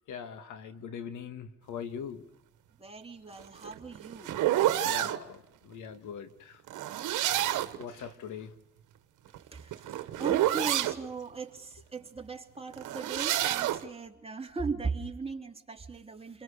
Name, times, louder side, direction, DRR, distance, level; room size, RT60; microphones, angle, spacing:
voice 1, 0.1-2.2 4.8-6.6 7.3-8.5, left 7 dB, 75° left, 9 dB, 2.0 m, -42 dB
voice 2, 2.8-4.3 9.5-16.4, right 4 dB, 20° right, 2 dB, 2.9 m, -38 dB
sound 1, 3.4-5.2 6.7-7.8 9.3-11.0 12.7-13.8, right 13 dB, 85° right, 1.3 m, -29 dB
29.5 x 22.5 x 6.7 m, 0.83 s
cardioid pair, 90°, 30 cm